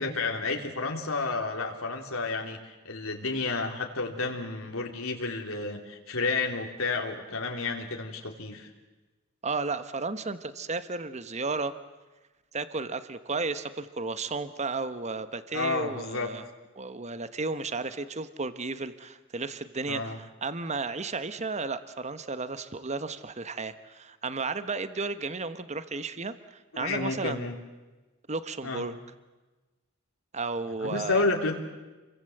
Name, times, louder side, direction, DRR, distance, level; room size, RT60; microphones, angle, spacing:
voice 1, 0.0-8.7 15.5-16.3 19.9-20.2 26.7-27.5 28.6-28.9 30.8-31.6, left 3 dB, 90° left, 2 dB, 3.3 m, -31 dB
voice 2, 9.4-11.7 12.5-16.4 16.8-27.5 28.3-29.0 30.3-31.3, right 3 dB, 35° right, 12 dB, 1.2 m, -33 dB
29.5 x 23.5 x 7.9 m, 1.2 s
head